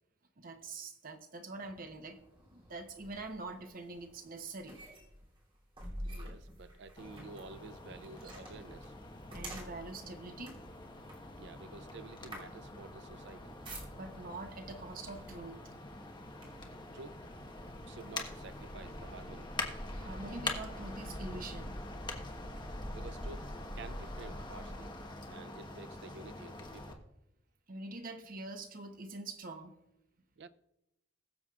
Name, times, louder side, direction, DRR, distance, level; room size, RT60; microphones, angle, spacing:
voice 1, 0.4-2.2 2.5-4.8 9.3-10.6 13.9-15.6 19.9-21.8 27.7-29.8, right 3 dB, 50° right, 1.0 m, -45 dB
sound 1, 1.5-14.4 15.2-15.4 15.8-16.8 17.5-17.6 18.0-19.7, right 1 dB, 30° right, 3.0 m, -50 dB
voice 2, 6.0-8.9 11.4-13.6 16.6-17.3 17.9-19.5 22.9-24.9 25.3-27.1 30.4-30.5, right 3 dB, 65° right, 0.5 m, -51 dB
sound 2, 7.0-26.9, left 2 dB, 25° left, 1.2 m, -44 dB
21.0 x 7.1 x 2.4 m
head